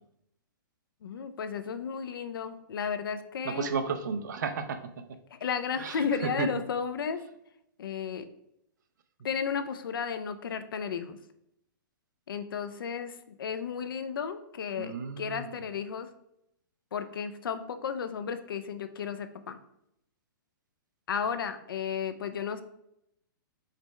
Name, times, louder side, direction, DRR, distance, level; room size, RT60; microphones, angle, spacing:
voice 1, 1.0-3.7 5.3-7.2 7.8-8.2 9.2-11.2 12.3-16.1 16.9-19.6 21.1-22.6, left 7 dB, 70° left, 10 dB, 0.5 m, -33 dB
voice 2, 3.4-4.8 5.8-6.5 14.8-15.5, right 5 dB, 55° right, 9 dB, 0.5 m, -33 dB
5.0 x 3.3 x 3.1 m, 0.79 s
hypercardioid pair, 175°, 12 cm